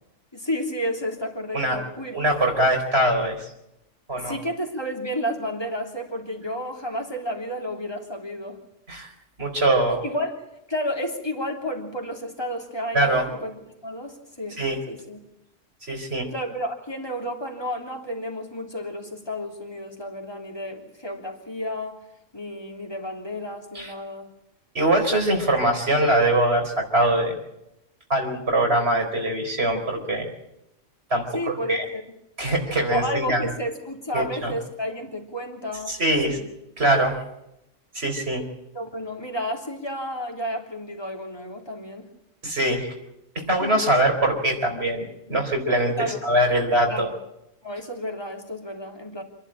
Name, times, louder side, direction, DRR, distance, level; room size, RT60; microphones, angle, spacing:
voice 1, 0.3-2.2 4.1-8.6 10.0-10.3 10.7-14.6 14.9-15.2 16.3-22.0 22.3-24.3 31.3-32.0 32.9-36.0 36.3-36.5 38.7-42.1 43.6-43.8 46.0-46.2 46.9-47.2 47.6-49.2, equal, 20° left, 1 dB, 3.4 m, -31 dB
voice 2, 2.1-3.4 4.1-4.4 8.9-9.1 9.4-10.0 12.9-13.2 14.6-14.8 15.9-16.3 23.7-23.9 24.7-27.3 28.1-30.3 31.1-31.8 32.4-33.4 34.1-34.5 35.9-36.4 36.8-37.2 37.9-38.4 42.4-42.9 43.3-47.1, right 1 dB, 55° right, 2 dB, 4.5 m, -22 dB
27.5 x 11.5 x 8.8 m, 0.86 s
omnidirectional pair, 1.3 m